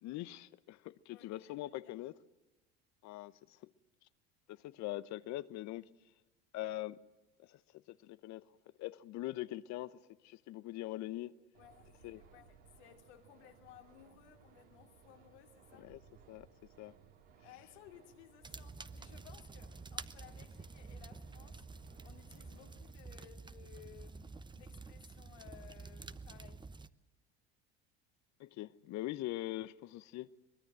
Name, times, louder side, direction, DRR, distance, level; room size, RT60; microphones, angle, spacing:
voice 1, 0.0-2.1 3.0-3.3 4.5-5.8 6.5-7.0 7.4-7.6 7.9-8.4 8.8-10.0 10.2-11.3 12.0-12.2 15.8-16.0 16.3-16.5 16.8-16.9 28.4-30.3, left 16 dB, 55° left, 1.0 m, -42 dB
voice 2, 1.1-2.0 11.4-15.9 17.4-21.6 22.0-26.7, left 11 dB, 75° left, 2.9 m, -59 dB
sound 1, 11.5-22.9, right 6 dB, 80° right, 3.8 m, -63 dB
sound 2, 18.4-26.9, right 4 dB, 15° right, 0.8 m, -49 dB
23.5 x 21.0 x 7.6 m
hypercardioid pair, 80°, 34 cm